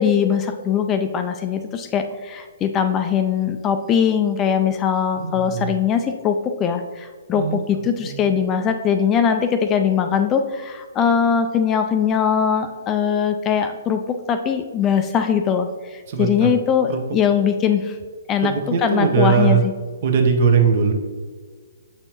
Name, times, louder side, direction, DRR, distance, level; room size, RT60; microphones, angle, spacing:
voice 1, 0.0-18.0 18.3-18.5 18.8-19.6, left 7 dB, 20° left, 7 dB, 0.3 m, -21 dB
voice 2, 5.2-5.7 7.3-8.2 16.1-16.5 16.9-17.0 18.4-19.6 20.0-20.9, right 6 dB, 45° right, 4 dB, 0.8 m, -20 dB
7.7 x 4.3 x 2.9 m, 1.5 s
figure-of-eight pair, 125°, 0 cm